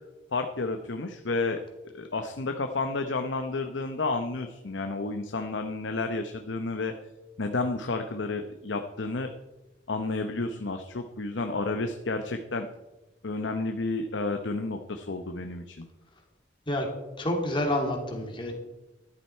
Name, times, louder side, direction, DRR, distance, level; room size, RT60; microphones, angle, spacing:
voice 1, 0.3-1.6 1.9-6.9 7.4-9.3 9.9-12.7 13.2-15.9, left 3 dB, 70° left, 6 dB, 0.8 m, -31 dB
voice 2, 17.2-18.5, left 1 dB, 25° left, 1 dB, 2.5 m, -28 dB
13.5 x 11.5 x 4.4 m, 1.0 s
head